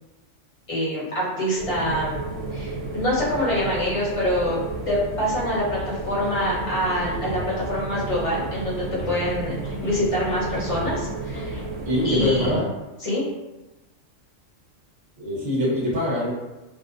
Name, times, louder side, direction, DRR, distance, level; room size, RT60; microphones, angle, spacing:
voice 1, 0.7-2.2 2.5-4.6 4.9-7.4 7.7-9.5 9.8-11.6 12.0-12.6 13.0-13.2, left 1 dB, 30° left, -8 dB, 0.8 m, -25 dB
sound 1, 1.6-12.4, right 3 dB, 80° right, 1.0 m, -32 dB
sound 2, 5.8-5.9 6.2-6.5 6.8-7.6 7.9-8.2 8.6-9.3 9.6-10.0 10.3-11.0 11.3-11.7 12.0-12.6, right 1 dB, 75° left, 1.1 m, -37 dB
voice 2, 11.8-12.6 15.2-16.3, left 1 dB, 40° right, -7 dB, 0.8 m, -23 dB
2.6 x 2.0 x 2.4 m, 1.1 s
omnidirectional pair, 1.3 m